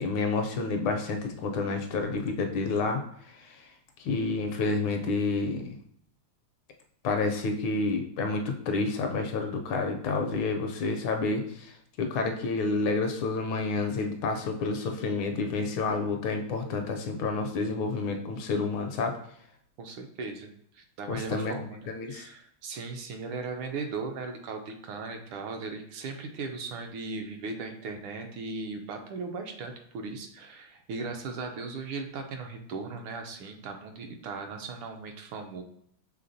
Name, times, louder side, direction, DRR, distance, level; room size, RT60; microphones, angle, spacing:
voice 1, 0.0-3.0 4.0-5.7 7.0-11.7 12.0-19.1 21.1-21.6 21.9-22.2, left 3 dB, 75° left, 4 dB, 1.3 m, -29 dB
voice 2, 19.8-20.5 20.7-35.6, right 4 dB, 80° right, 5 dB, 1.4 m, -38 dB
5.6 x 3.4 x 2.6 m, 0.66 s
omnidirectional pair, 2.4 m